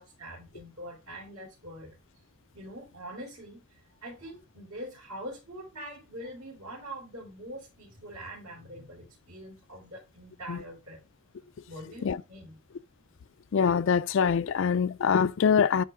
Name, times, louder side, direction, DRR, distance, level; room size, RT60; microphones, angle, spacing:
voice 1, 0.0-2.0 2.5-3.6 4.0-11.0 11.7-12.6, right 1 dB, 80° right, 4.1 m, -43 dB
voice 2, 13.5-15.8, left 6 dB, 55° left, 0.3 m, -24 dB
11.0 x 4.7 x 3.5 m
head